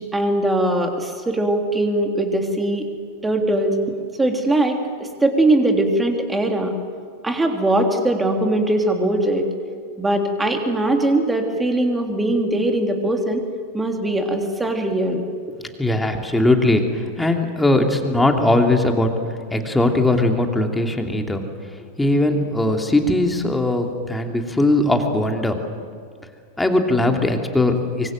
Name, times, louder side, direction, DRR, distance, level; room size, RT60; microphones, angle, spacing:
voice 1, 0.1-2.9 3.2-3.7 4.2-4.8 5.2-6.7 7.2-9.5 10.0-13.4 13.7-15.2, right 1 dB, 10° right, 3 dB, 3.3 m, -20 dB
voice 2, 15.8-19.1 19.5-21.4 22.0-25.6 26.6-28.1, left 2 dB, 5° left, 3 dB, 2.8 m, -19 dB
24.5 x 24.5 x 7.9 m, 2.1 s
figure-of-eight pair, 90°, 0 cm